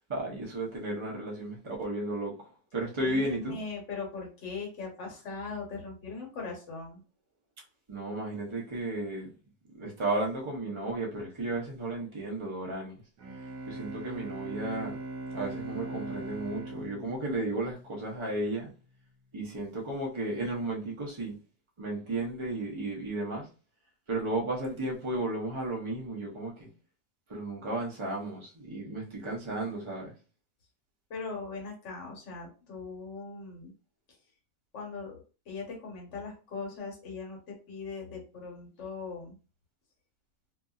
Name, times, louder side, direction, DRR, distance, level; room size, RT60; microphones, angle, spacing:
voice 1, 0.1-2.3 2.7-3.6 7.9-9.3 9.8-13.0 13.7-15.0 15.3-18.7 19.3-21.4 21.8-23.5 24.1-26.7 27.3-30.1, right 2 dB, 30° right, 0.5 m, -34 dB
voice 2, 3.0-7.0 31.1-33.7 34.7-35.1 35.5-39.3, left 4 dB, 55° left, 1.2 m, -40 dB
Bowed string instrument, 13.2-18.1, right 2 dB, 70° right, 1.1 m, -40 dB
2.7 x 2.6 x 2.3 m
omnidirectional pair, 1.5 m